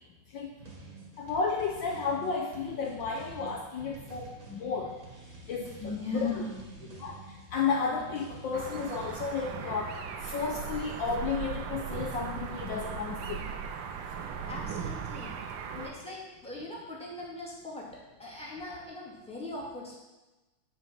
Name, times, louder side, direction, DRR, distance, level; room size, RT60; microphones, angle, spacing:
sound 1, 0.6-9.3, right 4 dB, 40° right, 1.7 m, -48 dB
voice 1, 1.2-4.9 5.5-6.3 7.0-7.2 7.5-9.9 10.2-13.4 15.7-15.9, left 5 dB, 65° left, 0 dB, 1.3 m, -32 dB
voice 2, 5.8-7.0 14.5-15.4 15.8-20.0, left 3 dB, 5° left, -6 dB, 2.0 m, -39 dB
sound 2, 8.5-15.9, right 7 dB, 70° right, 1.3 m, -38 dB
9.1 x 5.1 x 5.8 m, 1.1 s
omnidirectional pair, 2.4 m